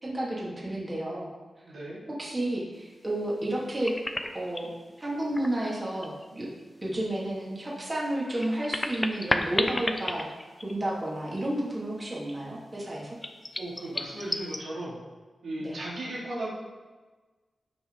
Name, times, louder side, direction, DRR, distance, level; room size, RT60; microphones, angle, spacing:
voice 1, 0.0-1.3 2.2-3.9 4.3-4.7 5.0-6.5 6.8-10.3 10.6-13.2 15.6-15.8, right 1 dB, 25° right, -5 dB, 2.5 m, -31 dB
voice 2, 1.6-2.0 12.9-13.0 13.6-15.0 15.4-16.5, right 1 dB, 85° right, -6 dB, 3.4 m, -36 dB
sound 1, 3.4-4.7 5.2-6.3 6.6-6.7 8.1-11.1 11.4-11.5 13.2-14.6, left 2 dB, 20° left, 0.8 m, -32 dB
17.0 x 6.0 x 4.0 m, 1.3 s
wide cardioid pair, 115°, 0 cm